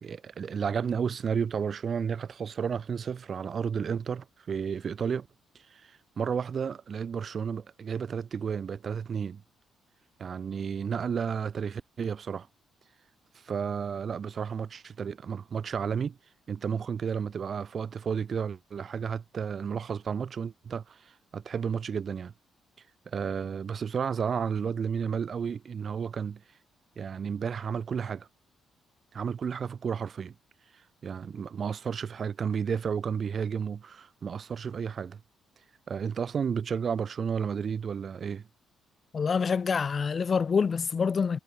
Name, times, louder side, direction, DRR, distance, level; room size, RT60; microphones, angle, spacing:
voice 1, 0.0-5.3 5.5-9.4 10.2-12.5 13.3-16.2 16.5-22.3 23.1-26.4 27.0-28.3 29.1-30.3 31.0-35.2 35.9-38.5, right 7 dB, 50° right, 0.9 m, -32 dB
voice 2, 39.1-41.4, left 5 dB, 40° left, 0.5 m, -26 dB
cardioid pair, 90°, 0 cm